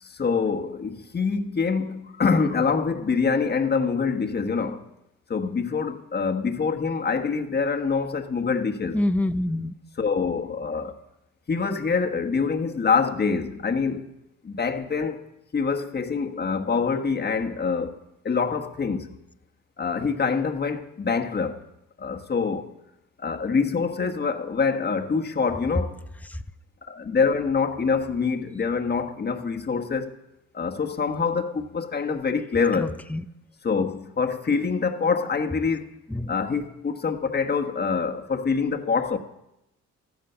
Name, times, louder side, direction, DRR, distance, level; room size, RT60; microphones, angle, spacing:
voice 1, 0.0-4.8 5.3-9.0 10.0-11.0 11.5-14.1 14.4-15.2 15.5-18.0 18.2-19.1 19.8-21.6 22.0-22.7 23.2-25.9 26.8-30.1 30.5-33.0 33.6-35.9 36.3-39.2, left 5 dB, 35° left, 1.4 m, -25 dB
voice 2, 8.9-9.7 32.7-33.2 36.1-36.3, left 1 dB, 5° left, 0.7 m, -26 dB
14.0 x 13.5 x 5.8 m
cardioid pair, 90°, 30 cm